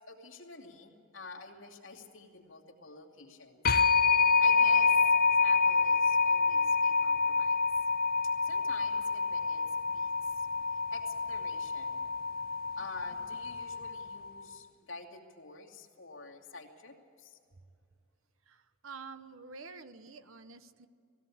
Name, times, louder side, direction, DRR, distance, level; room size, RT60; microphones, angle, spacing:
voice 1, 0.1-4.9 5.3-7.6 8.4-10.5 10.7-12.1 12.8-17.4, left 3 dB, 70° left, 1 dB, 2.6 m, -49 dB
sound 1, 3.7-14.3, left 4 dB, 45° left, 0.7 m, -27 dB
voice 2, 18.8-20.9, right 4 dB, 75° right, 11 dB, 0.9 m, -47 dB
20.5 x 16.5 x 8.6 m, 2.4 s
head